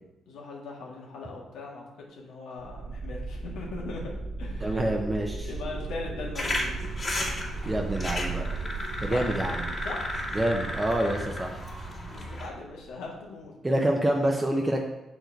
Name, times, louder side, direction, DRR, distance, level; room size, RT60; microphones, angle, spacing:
voice 1, 0.3-4.9 5.4-6.7 9.1-9.3 9.8-10.1 12.1-13.5, left 3 dB, 85° left, -2 dB, 1.7 m, -39 dB
sound 1, 2.6-13.2, right 3 dB, 55° right, 0.8 m, -37 dB
voice 2, 4.6-5.5 7.6-8.5 9.0-9.6 10.3-11.6 13.6-14.8, right 1 dB, 15° right, 1 dB, 0.7 m, -27 dB
sound 2, 6.4-12.5, left 1 dB, 40° left, 2.2 m, -34 dB
6.6 x 4.6 x 4.6 m, 0.98 s
cardioid pair, 90°, 0 cm